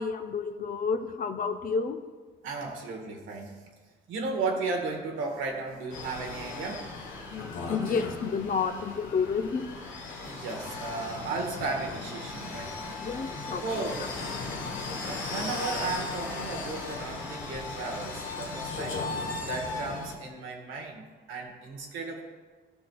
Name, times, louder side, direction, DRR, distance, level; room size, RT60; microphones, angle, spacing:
voice 1, 0.0-2.0 7.3-9.7 13.0-14.1, left 5 dB, 45° left, 7 dB, 0.7 m, -30 dB
voice 2, 2.4-3.6 4.1-6.9 10.2-13.0 13.6-14.2 15.1-19.0 19.5-22.2, right 3 dB, 85° right, 2 dB, 1.3 m, -35 dB
sound 1, 5.9-20.2, left 3 dB, 90° left, 1.3 m, -37 dB
15.0 x 6.1 x 2.3 m, 1.4 s
cardioid pair, 90°, 20 cm